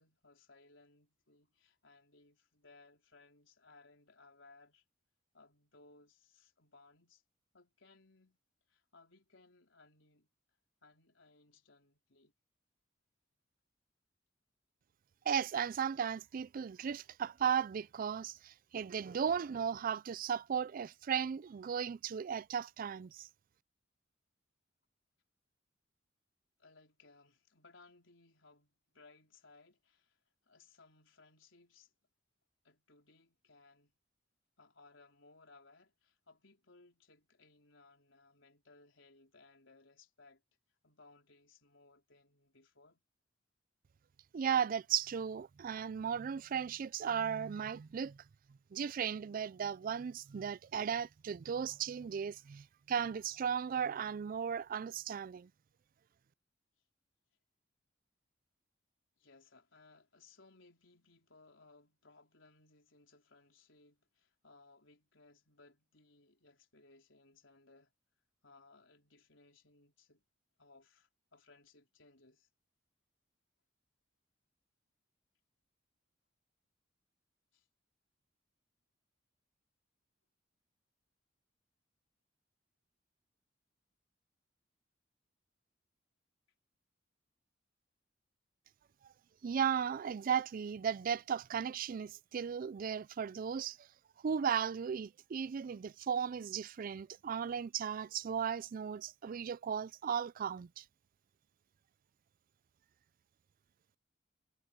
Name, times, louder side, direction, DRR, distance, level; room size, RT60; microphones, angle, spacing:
voice 1, 0.0-4.8 5.3-7.2 7.5-8.4 8.7-10.3 10.8-12.3 26.6-31.9 32.6-33.9 34.6-40.4 40.8-43.0 59.2-67.9 68.4-70.3 70.6-72.5 77.5-77.7, left 3 dB, 85° left, 4.2 m, -64 dB
voice 2, 15.3-23.3 44.3-48.2 48.7-55.5 89.4-93.8 94.2-100.8, right 7 dB, 45° right, 0.3 m, -36 dB
head